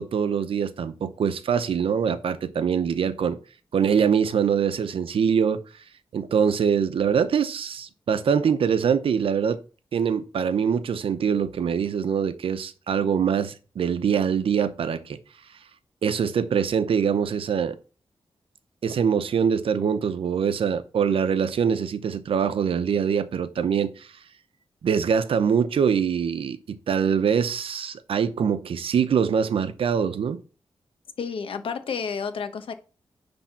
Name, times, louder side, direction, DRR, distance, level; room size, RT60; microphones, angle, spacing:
voice 1, 0.0-3.4 3.7-5.6 6.1-9.6 9.9-15.2 16.0-17.8 18.8-24.1 24.8-30.4, right 7 dB, 80° right, 0.7 m, -24 dB
voice 2, 31.2-32.7, left 6 dB, 75° left, 1.0 m, -30 dB
10.0 x 3.6 x 5.8 m
wide cardioid pair, 140°, 9 cm